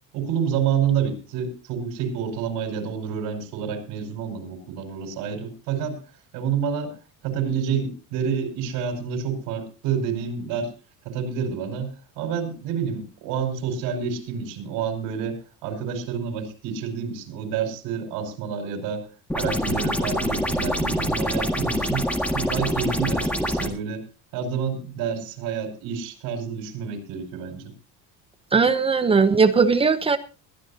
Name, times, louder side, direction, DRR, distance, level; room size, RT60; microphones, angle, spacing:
voice 1, 0.1-6.0 6.3-6.9 7.2-10.7 11.0-19.1 19.3-22.1 22.3-24.0 24.3-27.7, right 7 dB, 75° right, 6 dB, 5.1 m, -28 dB
sound 1, 19.3-23.7, equal, 5° left, 1.8 m, -25 dB
voice 2, 28.5-30.2, right 5 dB, 15° right, 10 dB, 0.7 m, -18 dB
22.0 x 13.5 x 2.8 m, 0.33 s
cardioid pair, 165°, 35 cm